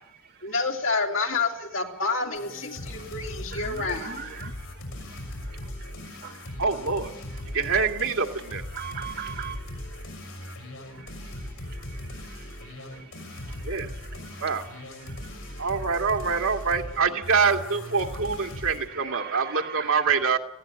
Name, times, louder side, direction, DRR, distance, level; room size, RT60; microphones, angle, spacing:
voice 1, 0.4-4.2, left 4 dB, 70° left, 3.2 m, -28 dB
sound 1, 2.4-18.9, left 1 dB, 85° left, 6.3 m, -39 dB
voice 2, 3.6-4.5 6.2-6.3 8.7-9.6 18.9-20.0, right 7 dB, 50° right, 2.0 m, -37 dB
voice 3, 6.6-7.1 7.5-8.6 13.7-13.9 14.4-14.6 15.6-20.4, right 5 dB, 85° right, 2.1 m, -25 dB
19.5 x 16.5 x 8.9 m
head